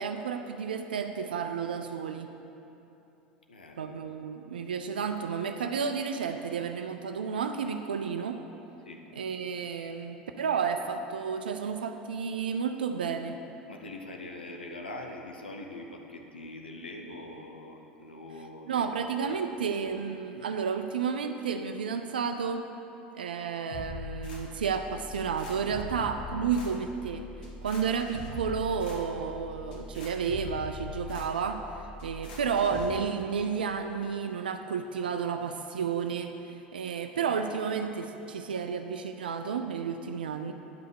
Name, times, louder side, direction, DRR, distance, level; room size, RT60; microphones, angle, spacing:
voice 1, 0.0-2.3 3.8-8.4 9.1-13.4 18.7-22.7 23.1-27.3 27.6-40.5, right 6 dB, 80° right, 6 dB, 0.4 m, -31 dB
voice 2, 3.5-3.9 8.9-9.0 13.7-18.8 19.2-19.4 19.8-20.0, left 2 dB, 90° left, 2 dB, 0.7 m, -43 dB
sound 1, 23.7-32.9, left 3 dB, 70° left, 1.7 m, -42 dB
9.5 x 5.6 x 6.9 m, 2.9 s
hypercardioid pair, 75°, 5 cm